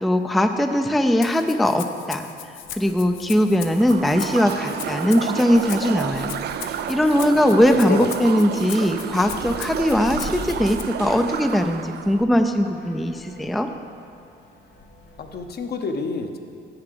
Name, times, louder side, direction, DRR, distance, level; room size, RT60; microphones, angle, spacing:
voice 1, 0.0-2.3 2.8-13.7, equal, ahead, 6 dB, 0.4 m, -20 dB
Rattle (instrument), 1.2-10.8, left 10 dB, 90° left, 0.6 m, -39 dB
sound 1, 2.6-15.5, left 1 dB, 70° left, 2.4 m, -42 dB
sound 2, 3.5-12.2, right 9 dB, 55° right, 0.4 m, -31 dB
voice 2, 7.3-8.1 15.2-16.4, left 4 dB, 55° left, 5 dB, 0.9 m, -28 dB
8.0 x 6.9 x 6.8 m, 2.5 s
cardioid pair, 90°, 20 cm